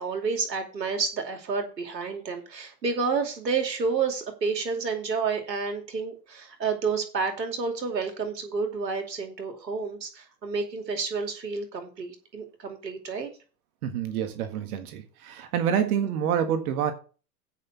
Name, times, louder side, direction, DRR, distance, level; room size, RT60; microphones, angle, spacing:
voice 1, 0.0-13.3, right 5 dB, 85° right, 2.6 m, -30 dB
voice 2, 13.8-16.9, right 8 dB, 60° right, 1.7 m, -27 dB
8.4 x 6.1 x 7.2 m
hypercardioid pair, 100°, 49 cm